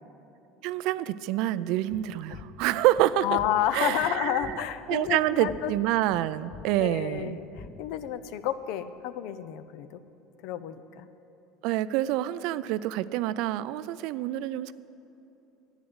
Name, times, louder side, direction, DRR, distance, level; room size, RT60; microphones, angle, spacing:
voice 1, 0.6-3.2 3.7-4.6 4.9-7.4 11.6-14.7, right 14 dB, 70° right, 16 dB, 0.4 m, -27 dB
sound 1, 1.9-8.2, left 5 dB, 30° left, 0.9 m, -47 dB
voice 2, 3.2-5.7 6.8-10.0 10.4-11.1, left 11 dB, 70° left, 13 dB, 0.6 m, -30 dB
11.5 x 9.2 x 7.9 m, 2.9 s
supercardioid pair, 115°, 0 cm